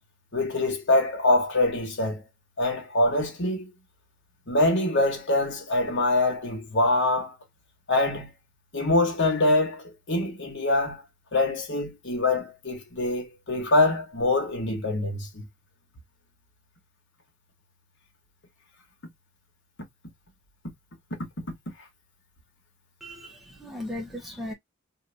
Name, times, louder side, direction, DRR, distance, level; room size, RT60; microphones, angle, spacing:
voice 1, 0.3-2.2 2.6-3.7 4.5-7.3 7.9-8.3 8.7-11.0 11.3-15.4, left 2 dB, 60° left, 1.3 m, -24 dB
voice 2, 23.0-24.5, left 1 dB, ahead, 0.7 m, -37 dB
2.6 x 2.6 x 3.3 m
head